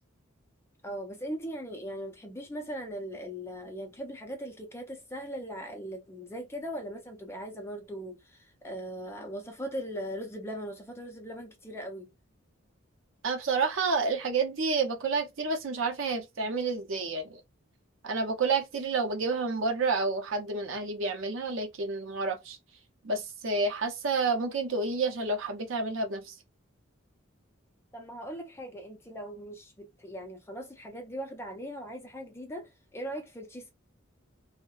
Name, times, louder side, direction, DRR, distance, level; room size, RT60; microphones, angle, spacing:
voice 1, 0.8-12.1 27.9-33.7, equal, 10° left, 0.5 m, -39 dB
voice 2, 13.2-17.4 18.0-22.6 23.0-26.3, right 4 dB, 70° right, 0.6 m, -29 dB
2.6 x 2.1 x 2.3 m
head